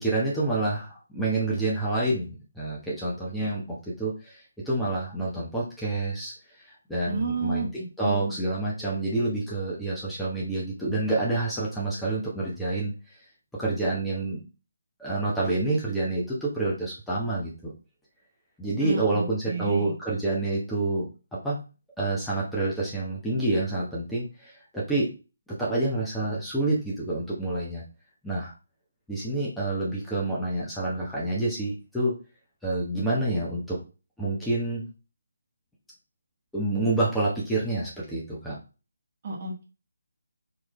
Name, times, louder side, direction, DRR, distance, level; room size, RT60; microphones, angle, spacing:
voice 1, 0.0-7.7 8.0-12.9 13.6-14.4 15.0-17.5 18.6-21.1 21.4-21.6 22.0-25.1 25.6-27.8 28.2-28.5 29.1-32.1 32.6-33.8 34.2-34.9 36.5-38.6, right 2 dB, 5° left, -7 dB, 0.9 m, -28 dB
voice 2, 7.1-7.7 8.0-8.3 18.8-19.9 39.2-39.6, right 4 dB, 40° right, -1 dB, 1.4 m, -31 dB
3.9 x 3.1 x 3.1 m, 0.31 s
figure-of-eight pair, 145°, 0 cm